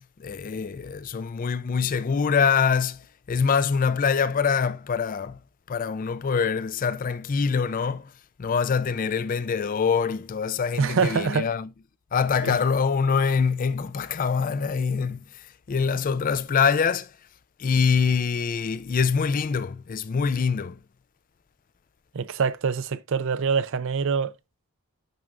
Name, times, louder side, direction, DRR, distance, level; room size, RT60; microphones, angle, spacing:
voice 1, 0.2-3.0 3.3-5.4 5.7-8.1 8.4-11.7 12.1-15.2 15.7-17.1 17.6-20.8, left 6 dB, 40° left, 0.3 m, -24 dB
voice 2, 10.8-11.5 12.4-12.6 22.1-24.3, right 5 dB, 60° right, 0.5 m, -25 dB
9.0 x 6.3 x 2.5 m
head